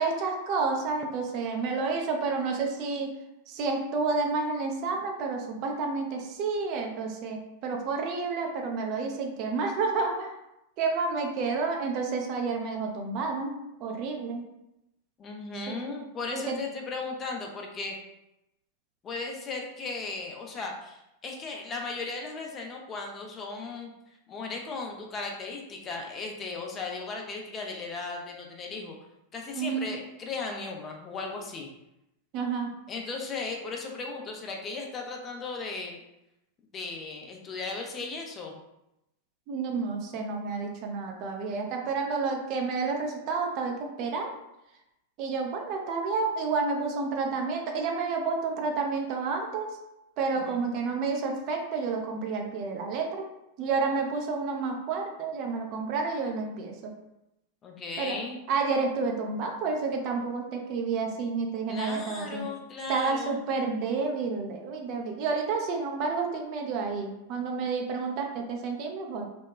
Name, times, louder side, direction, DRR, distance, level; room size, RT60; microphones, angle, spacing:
voice 1, 0.0-3.1 3.5-10.3 10.8-13.5 13.8-14.4 15.7-15.8 16.3-16.6 29.5-29.9 32.3-32.7 39.5-44.3 45.2-49.7 50.2-53.3 53.6-56.9 58.0-58.2 58.5-62.5 62.9-69.3, right 4 dB, 40° right, 2 dB, 0.4 m, -30 dB
voice 2, 15.2-18.0 19.0-23.9 24.3-29.0 29.3-31.7 32.9-36.0 36.7-38.6 50.3-50.6 57.6-58.4 61.7-63.4, left 3 dB, 25° left, 1 dB, 0.4 m, -36 dB
2.9 x 2.1 x 2.2 m, 0.88 s
figure-of-eight pair, 90°, 0 cm